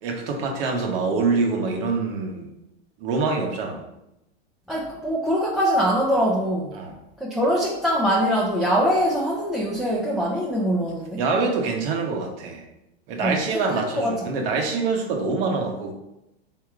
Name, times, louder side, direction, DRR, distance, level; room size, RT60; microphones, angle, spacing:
voice 1, 0.0-2.5 3.0-3.8 6.7-6.9 11.2-12.6 13.1-15.9, right 4 dB, 60° right, 2 dB, 1.1 m, -25 dB
voice 2, 4.7-6.7 7.2-11.2 13.2-13.4 14.0-14.1, equal, ahead, -6 dB, 0.5 m, -23 dB
3.6 x 2.9 x 4.7 m, 0.90 s
hypercardioid pair, 120°, 33 cm